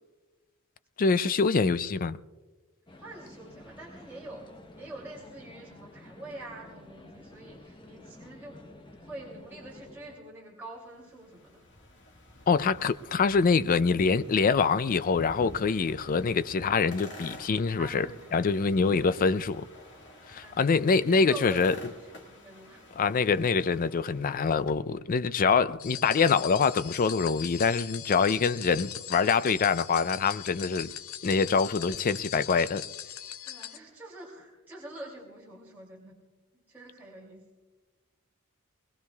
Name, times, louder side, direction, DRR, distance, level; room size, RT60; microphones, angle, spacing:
voice 1, 1.0-2.2 12.5-18.1 18.3-19.7 20.3-21.7 23.0-30.9 31.2-32.8, left 5 dB, 40° left, 0.4 m, -25 dB
sound 1, 2.9-10.2, left 1 dB, 20° left, 0.8 m, -51 dB
voice 2, 3.0-4.4 4.7-8.6 9.0-11.6 17.8-18.5 18.9-19.3 20.4-22.9 33.4-36.2 36.5-37.4, right 1 dB, 10° right, 2.7 m, -46 dB
sound 2, 10.7-24.8, left 1 dB, 55° left, 1.8 m, -50 dB
sound 3, 25.8-33.8, left 10 dB, 90° left, 0.7 m, -40 dB
22.0 x 20.5 x 2.3 m
head